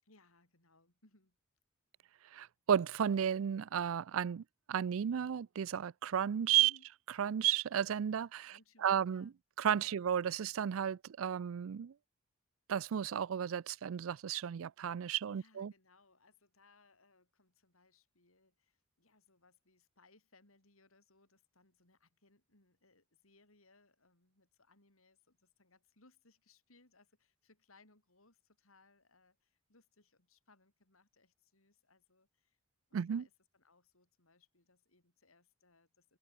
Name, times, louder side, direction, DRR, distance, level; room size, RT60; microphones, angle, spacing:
voice 1, 0.0-1.4 6.6-6.9 8.5-9.3 9.8-10.0 15.0-32.6 32.9-36.2, left 3 dB, 90° left, 6.5 m, -68 dB
voice 2, 2.3-6.7 7.2-8.5 8.8-9.3 9.6-11.9 12.7-15.7 32.9-33.2, right 9 dB, 80° right, 0.4 m, -33 dB
head